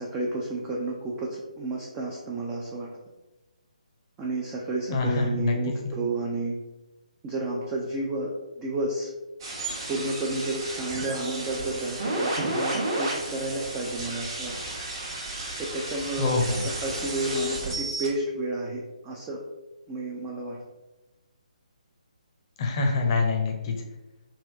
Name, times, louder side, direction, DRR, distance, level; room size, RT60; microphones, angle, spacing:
voice 1, 0.0-2.9 4.2-6.6 7.2-9.1 9.9-14.5 15.6-16.4 16.6-19.4 19.9-20.6, right 2 dB, 15° right, -3 dB, 0.4 m, -31 dB
voice 2, 4.9-5.5 5.8-6.0 16.2-16.6 22.6-23.7, left 3 dB, 30° left, 2 dB, 0.6 m, -25 dB
sound 1, 9.4-18.1, right 2 dB, 35° right, 0.9 m, -32 dB
3.4 x 2.6 x 3.4 m, 1.1 s
figure-of-eight pair, 140°, 4 cm